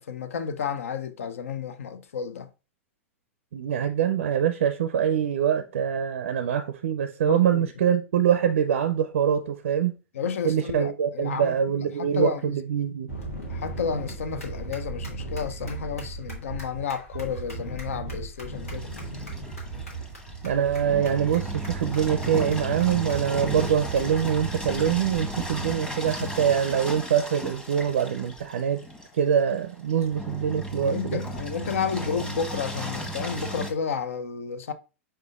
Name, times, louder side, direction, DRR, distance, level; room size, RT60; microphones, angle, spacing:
voice 1, 0.0-2.5 7.3-7.6 10.1-11.6 12.0-12.5 13.5-18.9 30.8-34.7, left 6 dB, 75° left, 0.5 m, -31 dB
voice 2, 3.5-10.0 10.4-13.1 20.4-28.8 29.1-31.2, right 8 dB, 70° right, 0.4 m, -24 dB
sound 1, 13.1-25.8, right 2 dB, 90° left, 1.6 m, -37 dB
Engine, 18.6-33.7, right 1 dB, 10° left, 1.2 m, -35 dB
5.0 x 4.4 x 2.4 m
hypercardioid pair, 100°, 7 cm